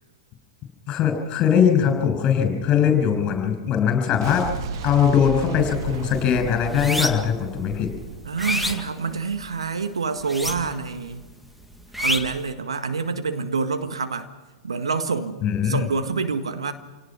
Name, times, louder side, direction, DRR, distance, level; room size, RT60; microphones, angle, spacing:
voice 1, 0.9-4.4 4.8-7.9 15.4-15.9, left 8 dB, 30° left, 5 dB, 6.7 m, -21 dB
Boom, 4.2-9.1, right 6 dB, 50° right, 1.9 m, -34 dB
sound 1, 5.6-5.9 6.3-7.4 7.9-9.6 10.2-11.0 11.2-12.5, equal, ahead, 1.9 m, -28 dB
voice 2, 8.3-11.2 12.0-14.3 14.6-16.7, right 5 dB, 70° right, 8 dB, 1.8 m, -27 dB
28.0 x 18.5 x 6.1 m, 1.2 s
figure-of-eight pair, 105°, 3 cm